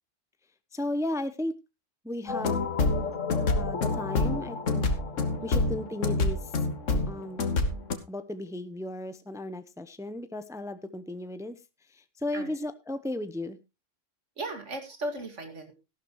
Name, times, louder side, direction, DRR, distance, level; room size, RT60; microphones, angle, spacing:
voice 1, 0.7-1.6 2.0-2.6 3.6-4.8 5.4-6.5 7.1-7.4 8.1-11.6 11.9-13.6, left 1 dB, 5° right, 11 dB, 0.6 m, -35 dB
sound 1, 2.3-8.0, left 3 dB, 80° left, 1.8 m, -27 dB
voice 2, 5.4-5.9 12.3-12.6 14.4-15.7, right 2 dB, 70° right, 7 dB, 2.4 m, -37 dB
14.0 x 12.0 x 3.0 m, 0.26 s
omnidirectional pair, 1.3 m